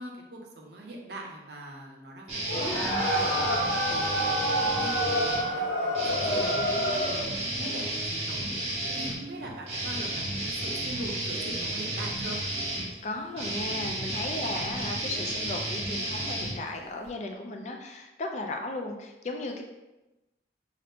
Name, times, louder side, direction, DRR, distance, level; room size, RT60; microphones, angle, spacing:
voice 1, 0.0-3.5 3.9-8.5 8.9-12.4, right 1 dB, 60° right, 0 dB, 0.6 m, -42 dB
sound 1, 2.3-5.4 5.9-17.1, right 1 dB, 35° right, 0.9 m, -32 dB
sound 2, 2.4-7.3, equal, 80° left, 1.1 m, -28 dB
voice 2, 13.0-19.6, left 2 dB, 40° left, 3 dB, 0.3 m, -36 dB
2.7 x 2.5 x 3.4 m, 1.0 s
head